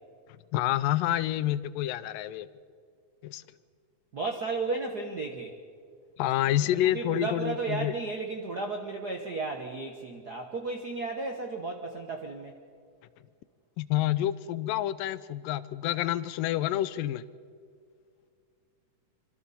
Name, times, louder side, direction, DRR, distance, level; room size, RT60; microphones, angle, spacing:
voice 1, 0.5-2.5 3.2-3.4 6.2-7.9 13.8-17.3, left 13 dB, 90° left, 16 dB, 2.3 m, -28 dB
voice 2, 4.1-5.5 6.6-12.6, right 3 dB, 65° right, 3 dB, 0.9 m, -34 dB
26.0 x 25.0 x 4.2 m, 2.1 s
omnidirectional pair, 3.8 m